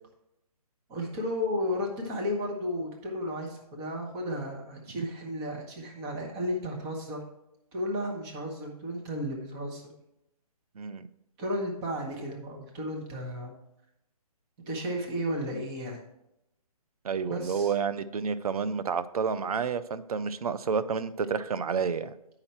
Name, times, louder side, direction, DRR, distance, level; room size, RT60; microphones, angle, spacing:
voice 1, 0.9-7.2 7.7-9.9 11.4-13.5 14.7-16.0 17.2-17.7, equal, 15° right, 1 dB, 1.1 m, -33 dB
voice 2, 10.8-11.1 17.0-22.1, right 6 dB, 70° right, 14 dB, 0.6 m, -30 dB
8.9 x 5.7 x 4.4 m, 0.85 s
hypercardioid pair, 160°, 19 cm